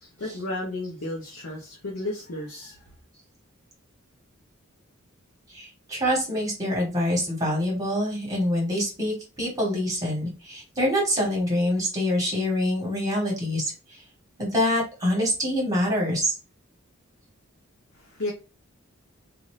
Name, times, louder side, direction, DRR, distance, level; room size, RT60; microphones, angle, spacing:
voice 1, 0.0-2.8 18.0-18.3, left 1 dB, 75° left, 0.8 m, -33 dB
voice 2, 5.5-13.6 14.4-16.3, equal, 15° right, 1.4 m, -25 dB
2.6 x 2.5 x 3.2 m
head